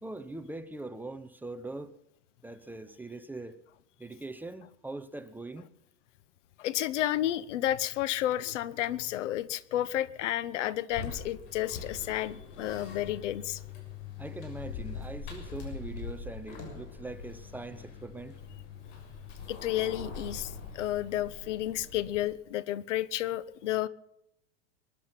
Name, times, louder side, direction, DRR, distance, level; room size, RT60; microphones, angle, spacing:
voice 1, 0.0-1.9 2.4-3.6 4.0-5.7 14.2-18.4, right 2 dB, 5° right, 0.7 m, -42 dB
voice 2, 6.6-13.6 19.5-23.9, left 13 dB, 85° left, 1.1 m, -31 dB
sound 1, 10.9-22.3, left 5 dB, 60° left, 6.6 m, -43 dB
22.5 x 11.0 x 5.9 m
supercardioid pair, 145°, 35 cm